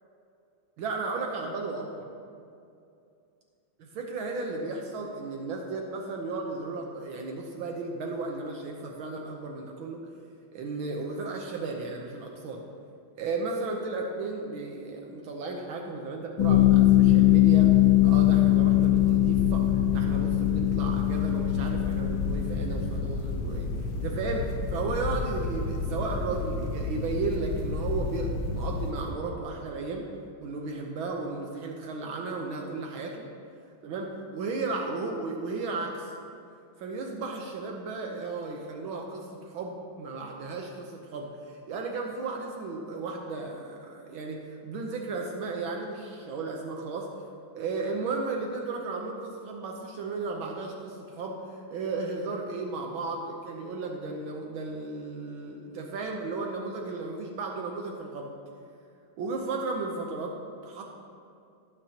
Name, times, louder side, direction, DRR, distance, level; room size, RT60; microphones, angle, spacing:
voice 1, 0.8-2.1 3.9-10.1 10.5-12.7 13.2-17.7 18.0-30.1 30.4-33.3 33.8-36.1 36.8-47.1 47.5-58.3 59.2-60.4 60.6-60.8, right 3 dB, 75° right, 1 dB, 1.7 m, -34 dB
sound 1, 16.4-28.9, left 11 dB, 70° left, 1.8 m, -23 dB
17.5 x 8.7 x 2.9 m, 2.5 s
omnidirectional pair, 2.3 m